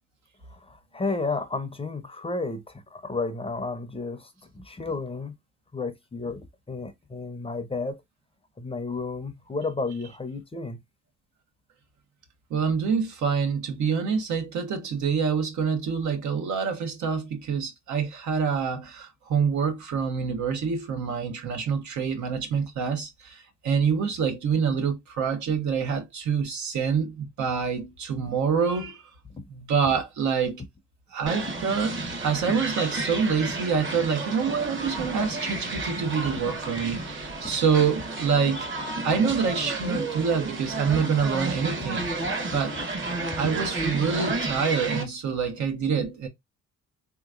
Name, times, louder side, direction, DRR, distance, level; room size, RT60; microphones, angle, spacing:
voice 1, 0.5-5.3 5.7-8.0 8.6-10.8 29.3-29.5 40.9-41.0, left 3 dB, 20° left, 0.6 m, -32 dB
voice 2, 12.5-29.0 29.5-30.6 31.1-38.7 39.0-42.1 42.5-42.7 43.4-46.3, right 6 dB, 70° right, 1.1 m, -26 dB
sound 1, 31.3-45.0, right 2 dB, 40° right, 1.2 m, -32 dB
3.5 x 2.9 x 2.5 m
cardioid pair, 90°, 30 cm